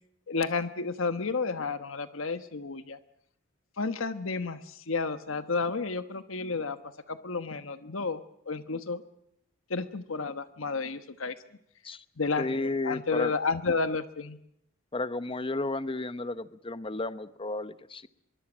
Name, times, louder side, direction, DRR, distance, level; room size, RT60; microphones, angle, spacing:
voice 1, 0.3-3.0 3.8-6.8 7.1-9.0 9.7-11.3 12.2-14.4, left 4 dB, 75° left, 10 dB, 1.2 m, -31 dB
voice 2, 12.4-13.3 14.9-18.1, left 2 dB, 25° left, 13 dB, 0.9 m, -33 dB
24.5 x 22.5 x 6.2 m, 0.76 s
head